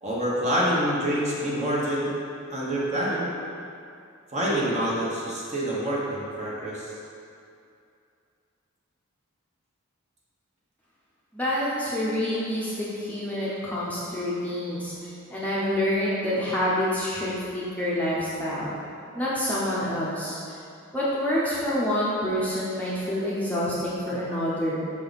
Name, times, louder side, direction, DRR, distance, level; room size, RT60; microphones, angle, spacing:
voice 1, 0.0-2.1 2.5-3.3 4.3-6.9, equal, 30° right, -6 dB, 1.3 m, -26 dB
voice 2, 11.3-18.7 19.1-20.6 20.9-25.0, left 1 dB, 5° left, -8 dB, 0.8 m, -27 dB
6.1 x 4.9 x 4.1 m, 2.5 s
head